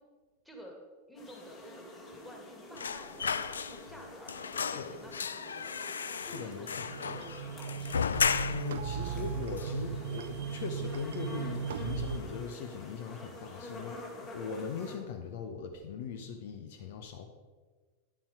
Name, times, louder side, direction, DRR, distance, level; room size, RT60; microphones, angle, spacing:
voice 1, 0.4-0.8 1.1-8.5, equal, ahead, 1 dB, 2.2 m, -52 dB
sound 1, 1.2-15.0, left 1 dB, 30° left, 2.4 m, -48 dB
sound 2, 2.8-4.0 4.3-8.8 9.2-9.3 9.6-10.4 10.7-10.9 11.2-11.9 12.2-12.4, left 6 dB, 70° left, 0.3 m, -35 dB
voice 2, 6.2-6.9 8.5-17.3, left 6 dB, 55° left, 6 dB, 0.7 m, -40 dB
sound 3, 6.8-12.2, right 7 dB, 60° right, 0.5 m, -37 dB
9.9 x 7.2 x 4.9 m, 1.4 s
figure-of-eight pair, 90°, 0 cm